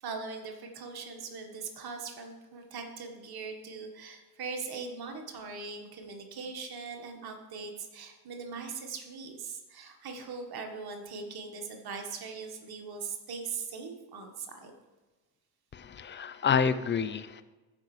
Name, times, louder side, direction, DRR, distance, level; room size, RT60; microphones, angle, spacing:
voice 1, 0.0-14.7, right 5 dB, 50° right, 4 dB, 1.7 m, -40 dB
voice 2, 15.7-17.4, left 6 dB, 25° left, 12 dB, 0.6 m, -28 dB
14.5 x 5.3 x 3.3 m, 1.2 s
hypercardioid pair, 60°, 48 cm